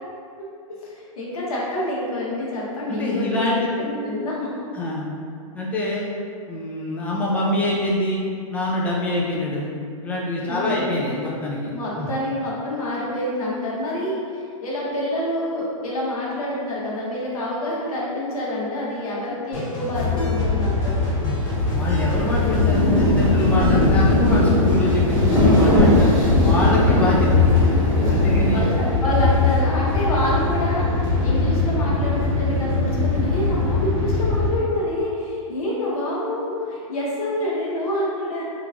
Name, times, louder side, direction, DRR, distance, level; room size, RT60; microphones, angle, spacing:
voice 1, 0.8-4.6 10.5-10.8 11.7-21.1 26.8-27.0 28.5-38.4, left 1 dB, 85° left, -5 dB, 1.1 m, -27 dB
voice 2, 2.9-3.7 4.7-5.1 5.5-6.1 6.5-8.2 8.5-9.7 10.0-12.1 21.7-27.7 28.1-28.7, left 1 dB, 10° left, -5 dB, 0.3 m, -25 dB
sound 1, 19.5-26.4, equal, 65° left, 1.4 m, -31 dB
sound 2, 19.9-34.5, left 3 dB, 55° right, 1.3 m, -21 dB
Rain, 21.8-29.0, left 1 dB, 10° right, 0.8 m, -21 dB
3.4 x 2.9 x 2.4 m, 2.4 s
hypercardioid pair, 150°, 18 cm